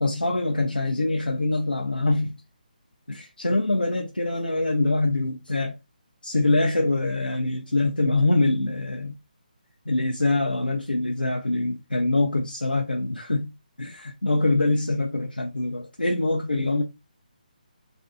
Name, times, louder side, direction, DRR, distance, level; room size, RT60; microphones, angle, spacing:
voice 1, 0.0-2.4 3.1-5.8 6.2-9.2 9.9-13.5 13.8-16.8, left 2 dB, 80° left, 0.4 m, -24 dB
2.5 x 2.5 x 2.4 m
figure-of-eight pair, 145°, 5 cm